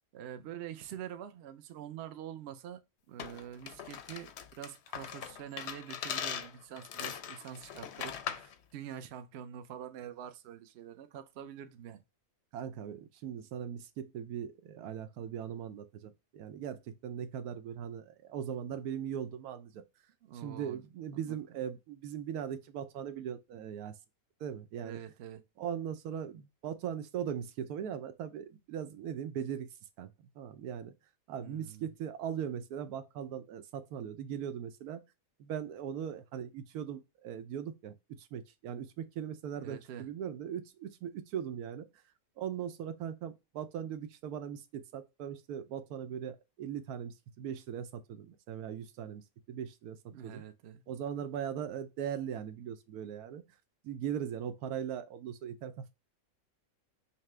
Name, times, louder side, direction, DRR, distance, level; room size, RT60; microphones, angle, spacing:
voice 1, 0.1-2.8 3.1-12.0 20.2-20.8 21.1-21.4 24.8-25.4 31.4-31.8 39.6-40.1 50.1-50.8, right 9 dB, 60° right, 0.7 m, -45 dB
sound 1, 3.2-8.5, left 8 dB, 65° left, 0.7 m, -40 dB
voice 2, 12.5-19.8 20.3-23.9 24.4-25.0 25.6-29.7 30.0-30.9 31.3-35.0 35.4-41.8 42.4-49.2 49.5-50.4 50.9-53.4 53.8-55.9, right 9 dB, 90° right, 1.1 m, -39 dB
5.8 x 2.1 x 3.2 m
omnidirectional pair, 1.6 m